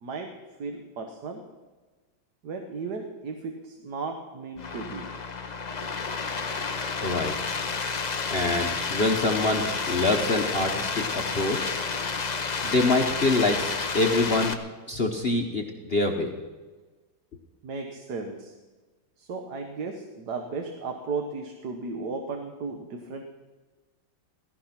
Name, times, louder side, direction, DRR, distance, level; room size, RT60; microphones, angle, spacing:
voice 1, 0.6-1.5 2.4-5.1 17.6-18.5 19.2-23.2, right 4 dB, 55° right, 4 dB, 1.6 m, -35 dB
sound 1, 4.6-14.5, left 4 dB, 90° left, 0.3 m, -30 dB
voice 2, 7.0-7.3 8.3-11.7 12.6-14.6 14.9-15.6 15.9-16.3, left 2 dB, 40° left, 3 dB, 1.1 m, -25 dB
17.0 x 14.5 x 5.9 m, 1.3 s
omnidirectional pair, 2.2 m